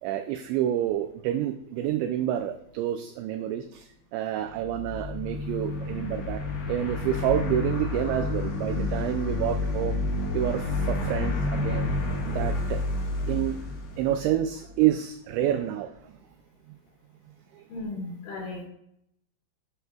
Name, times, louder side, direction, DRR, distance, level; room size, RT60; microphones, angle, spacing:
voice 1, 0.0-10.0 10.3-11.9 12.2-12.9 13.3-13.6 14.0-16.1 16.7-16.8 17.5-17.6, right 11 dB, 85° right, 8 dB, 2.5 m, -28 dB
sound 1, 4.5-14.7, left 2 dB, 85° left, 4.2 m, -30 dB
voice 2, 17.7-18.6, left 2 dB, 65° left, -5 dB, 5.2 m, -35 dB
13.5 x 8.0 x 2.4 m, 0.74 s
omnidirectional pair, 5.7 m